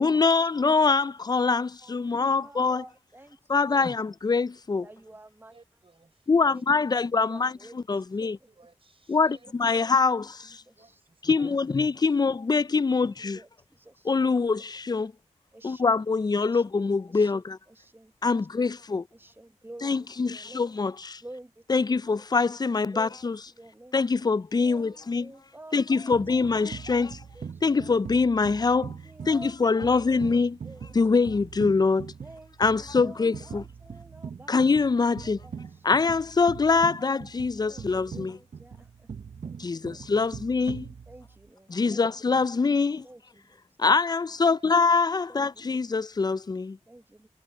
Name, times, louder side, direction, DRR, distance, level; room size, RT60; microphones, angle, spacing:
voice 1, 0.0-2.8 3.5-4.9 6.3-8.4 9.1-10.6 11.3-13.4 14.0-15.1 15.6-17.6 18.2-19.0 19.8-21.2 21.7-23.4 23.9-25.3 25.7-27.1 27.6-29.0 29.3-30.6 30.9-32.1 32.6-33.6 34.5-35.4 35.8-38.4 39.6-40.9 41.7-43.1 43.8-46.8, left 4 dB, 35° left, 0.4 m, -24 dB
voice 2, 0.8-1.2 1.4-3.8 4.8-5.6 6.5-7.8 8.2-8.5 9.7-9.8 10.2-11.0 11.4-11.5 11.8-11.9 12.9-14.3 15.5-15.9 16.4-16.6 17.1-18.8 19.1-20.7 21.2-22.0 22.9-23.2 23.5-24.0 24.6-28.1 29.0-30.2 30.6-31.2 32.2-34.6 35.2-35.9 36.7-36.9 37.6-39.1 39.4-40.0 41.1-42.1 43.0-44.0 45.3-45.6 46.9-47.3, right 1 dB, 15° right, 1.1 m, -50 dB
voice 3, 5.5-6.6 6.9-7.1 8.5-9.5 10.7-11.9 44.4-44.8 45.3-45.5, right 3 dB, 50° right, 6.0 m, -58 dB
sound 1, 26.1-41.5, right 6 dB, 75° right, 1.0 m, -42 dB
wide cardioid pair, 60°, 12 cm